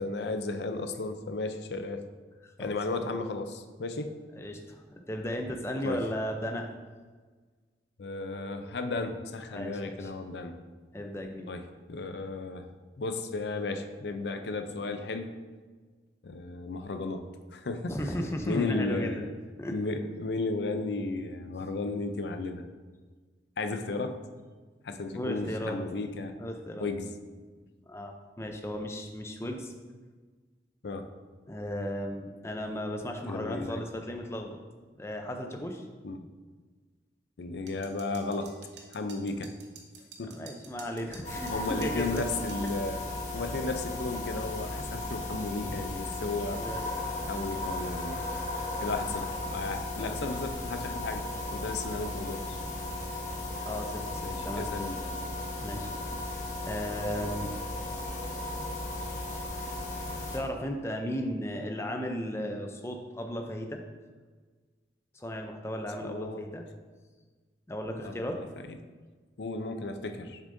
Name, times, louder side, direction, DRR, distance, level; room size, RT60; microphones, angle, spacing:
voice 1, 0.0-2.0 2.6-4.1 5.8-6.0 8.0-10.6 11.5-12.7 13.0-15.3 16.2-17.3 17.5-18.0 18.5-19.3 19.7-22.6 23.6-24.2 24.8-26.3 26.8-27.1 30.8-31.1 33.3-33.8 36.0-36.3 37.4-38.6 38.9-39.5 40.2-40.4 41.5-43.0 43.3-46.6 47.3-48.2 48.8-52.6 54.2-55.0 56.1-56.2 66.0-66.4 68.0-68.8 69.4-70.4, left 3 dB, 70° left, 7 dB, 0.5 m, -34 dB
voice 2, 2.4-3.0 4.4-6.7 9.5-10.1 10.9-11.5 17.9-19.3 19.6-19.8 25.1-25.8 26.4-26.9 27.9-29.7 31.5-34.6 35.0-35.9 40.2-42.2 42.6-42.7 45.6-45.8 46.5-46.9 50.0-50.4 53.6-54.7 55.6-55.9 56.2-56.4 56.6-57.6 60.3-63.8 65.1-66.6 67.7-68.4, equal, 15° left, 4 dB, 0.5 m, -35 dB
sound 1, 37.7-42.8, right 5 dB, 75° right, 0.8 m, -50 dB
sound 2, 41.2-60.4, left 2 dB, 40° left, 1.1 m, -35 dB
7.0 x 6.3 x 2.7 m, 1.4 s
head